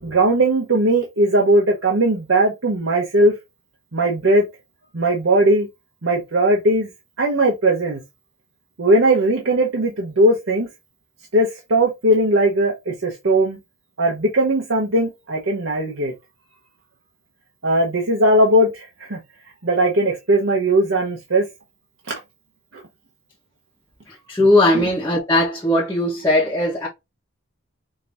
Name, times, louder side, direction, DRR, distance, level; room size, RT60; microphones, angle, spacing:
voice 1, 0.0-3.3 3.9-4.4 4.9-5.7 6.0-6.9 7.2-8.0 8.8-10.7 11.3-13.6 14.0-16.1 17.6-19.2 19.6-21.5 22.7-22.8 24.7-24.9, right 1 dB, 70° right, 0.9 m, -18 dB
voice 2, 24.3-26.9, left 1 dB, 15° left, 1.0 m, -18 dB
5.2 x 2.8 x 2.5 m
head